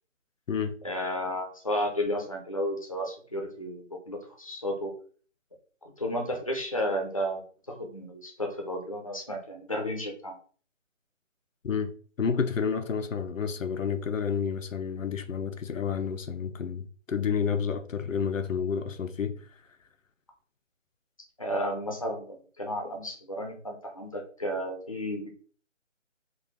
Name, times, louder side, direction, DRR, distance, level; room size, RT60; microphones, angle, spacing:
voice 1, 0.8-4.9 6.0-10.4 21.4-25.4, equal, 30° left, 0.5 m, -33 dB
voice 2, 12.2-19.4, left 6 dB, 85° left, 0.6 m, -30 dB
3.8 x 2.4 x 3.6 m
figure-of-eight pair, 160°, 38 cm